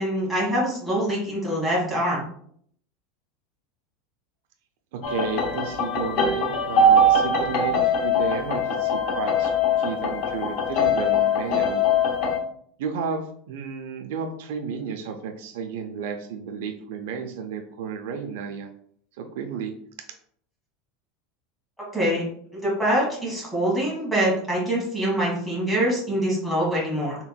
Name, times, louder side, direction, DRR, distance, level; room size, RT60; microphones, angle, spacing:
voice 1, 0.0-2.2 21.9-22.2 22.5-27.2, right 1 dB, 5° left, -6 dB, 1.4 m, -24 dB
voice 2, 4.9-11.9 12.8-18.7 19.2-19.7, right 5 dB, 65° right, 5 dB, 0.4 m, -32 dB
sound 1, 5.0-12.4, left 2 dB, 40° left, 0.6 m, -22 dB
4.3 x 3.6 x 2.2 m, 0.63 s
supercardioid pair, 180°, 0 cm